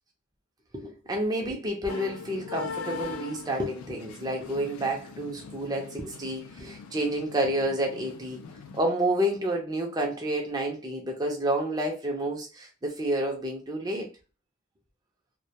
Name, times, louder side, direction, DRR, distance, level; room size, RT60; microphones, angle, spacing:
voice 1, 0.7-8.4 8.7-14.1, right 1 dB, 20° right, 0.5 m, -29 dB
sound 1, 1.9-8.8, left 5 dB, 80° left, 0.4 m, -41 dB
2.2 x 2.1 x 2.7 m
head